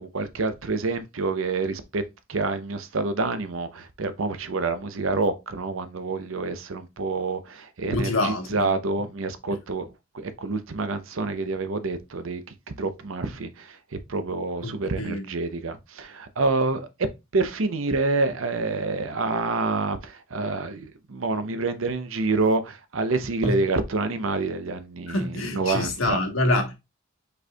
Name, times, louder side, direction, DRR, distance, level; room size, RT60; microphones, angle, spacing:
voice 1, 0.0-2.0 2.3-9.9 10.1-13.8 14.1-16.9 17.3-26.2, right 3 dB, 70° right, 0.7 m, -27 dB
voice 2, 7.9-8.7 14.6-14.7 15.0-15.2 23.4-23.6 25.1-26.7, left 2 dB, 75° left, 1.3 m, -26 dB
5.3 x 4.3 x 2.3 m
head